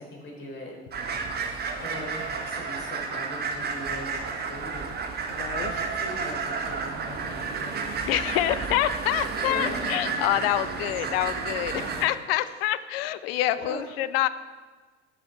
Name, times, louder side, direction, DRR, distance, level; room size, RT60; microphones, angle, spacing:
voice 1, 0.0-4.9 5.5-7.9 8.2-8.3 9.3-10.0 10.9-11.0 11.7-12.0 13.6-13.8, left 1 dB, 35° left, 0 dB, 3.4 m, -40 dB
sound 1, 0.9-12.1, right 5 dB, 30° right, 1.2 m, -31 dB
voice 2, 5.3-5.7 8.1-14.3, left 13 dB, 60° left, 14 dB, 0.6 m, -27 dB
12.5 x 7.1 x 4.4 m, 1.4 s
figure-of-eight pair, 70°, 34 cm